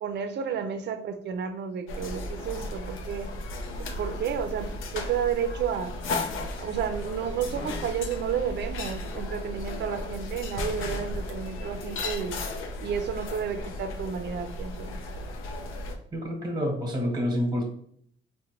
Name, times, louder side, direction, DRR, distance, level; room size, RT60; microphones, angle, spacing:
voice 1, 0.0-3.3 3.8-5.9 6.6-12.4 12.8-15.0, right 7 dB, 60° right, 9 dB, 0.5 m, -31 dB
sound 1, 1.9-16.0, left 2 dB, 85° left, 0.5 m, -35 dB
voice 2, 16.1-17.6, equal, 20° right, 1 dB, 1.0 m, -28 dB
3.7 x 2.1 x 2.8 m, 0.64 s
cardioid pair, 90°, 20 cm